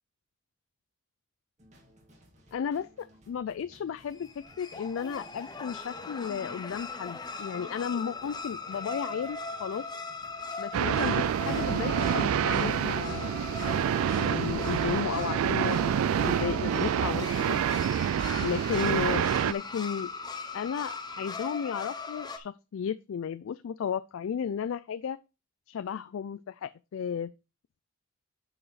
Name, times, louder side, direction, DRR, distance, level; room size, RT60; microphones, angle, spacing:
sound 1, 1.6-18.8, right 1 dB, 35° right, 2.2 m, -56 dB
voice 1, 2.5-4.3 4.6-9.9 10.6-13.4 14.2-17.6 18.4-20.1 20.5-25.2 25.7-27.3, left 7 dB, 75° left, 0.3 m, -34 dB
sound 2, 4.1-22.4, left 3 dB, 20° left, 0.7 m, -39 dB
sound 3, 10.7-19.5, right 9 dB, 85° right, 0.3 m, -27 dB
9.9 x 4.9 x 4.0 m
head